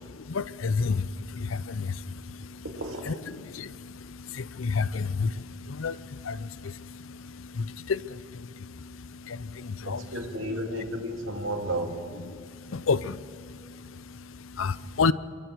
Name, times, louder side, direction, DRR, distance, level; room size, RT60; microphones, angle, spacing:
voice 1, 0.1-2.6 3.1-10.1 10.5-10.6 12.3-15.1, left 4 dB, 85° left, 17 dB, 0.6 m, -32 dB
voice 2, 2.6-3.2 9.8-12.0, right 1 dB, 85° right, 2 dB, 2.6 m, -33 dB
27.0 x 23.0 x 4.7 m, 2.3 s
head